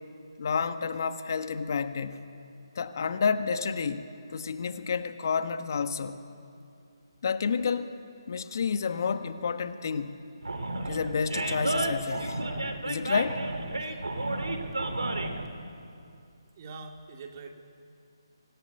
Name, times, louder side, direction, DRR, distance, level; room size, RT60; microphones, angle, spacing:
voice 1, 0.4-2.2 2.7-4.1 4.3-6.2 7.2-7.9 8.3-10.2 10.8-12.4 12.8-13.4, left 5 dB, 50° left, 9 dB, 1.4 m, -30 dB
Animal, 10.4-15.5, right 2 dB, 75° right, 3.1 m, -31 dB
voice 2, 16.6-17.6, right 4 dB, 40° right, 3 dB, 2.7 m, -43 dB
25.5 x 17.5 x 9.5 m, 2.5 s
figure-of-eight pair, 150°, 2 cm